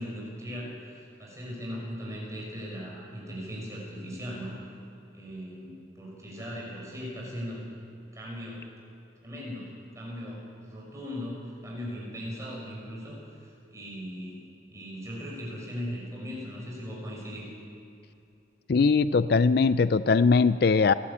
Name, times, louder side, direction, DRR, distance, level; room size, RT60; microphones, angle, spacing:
voice 1, 0.0-4.7 5.1-7.7 8.1-8.6 9.2-14.4 14.7-17.5, equal, 15° right, -3 dB, 6.2 m, -38 dB
voice 2, 18.7-20.9, left 4 dB, 55° left, 14 dB, 0.4 m, -21 dB
29.5 x 13.0 x 8.6 m, 2.7 s
head